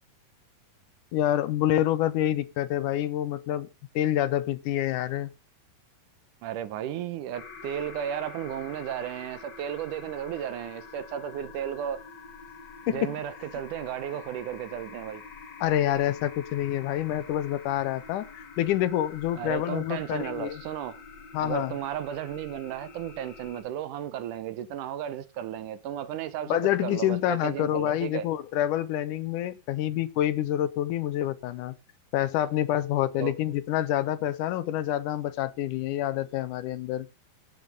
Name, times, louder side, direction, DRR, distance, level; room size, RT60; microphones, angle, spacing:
voice 1, 1.1-3.7 4.0-5.3 12.9-13.2 15.6-20.6 21.3-21.7 26.5-31.7 32.1-37.1, left 12 dB, 70° left, 2.0 m, -27 dB
voice 2, 6.4-12.0 12.9-15.2 19.3-21.0 21.4-28.2 33.2-33.3, right 10 dB, 70° right, 2.1 m, -34 dB
sound 1, 7.3-23.6, left 5 dB, 50° left, 1.3 m, -46 dB
16.5 x 5.8 x 5.3 m
omnidirectional pair, 4.3 m